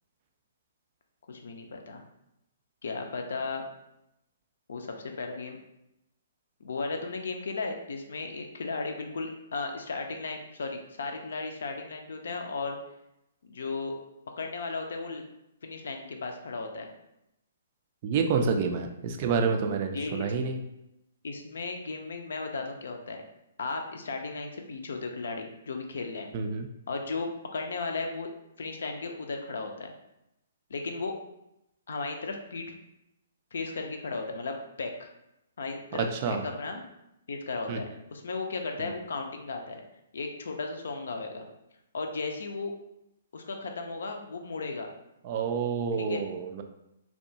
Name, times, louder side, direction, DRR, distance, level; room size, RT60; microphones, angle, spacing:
voice 1, 1.3-2.0 2.8-3.6 4.7-5.6 6.6-12.8 13.4-14.0 14.4-15.2 15.6-16.9 19.9-20.3 21.2-23.2 23.6-26.3 26.9-28.3 28.6-29.9 30.7-31.2 31.9-32.7 33.5-35.1 35.6-36.8 37.3-39.8 40.1-41.5 41.9-42.7 43.3-44.9 46.0-46.2, left 3 dB, 65° left, 4 dB, 0.4 m, -35 dB
voice 2, 18.0-20.6 26.3-26.7 35.9-36.4 37.7-37.8 38.8-38.9 45.2-46.6, right 5 dB, 40° right, 5 dB, 0.3 m, -28 dB
2.7 x 2.2 x 2.6 m, 0.85 s
figure-of-eight pair, 125°, 0 cm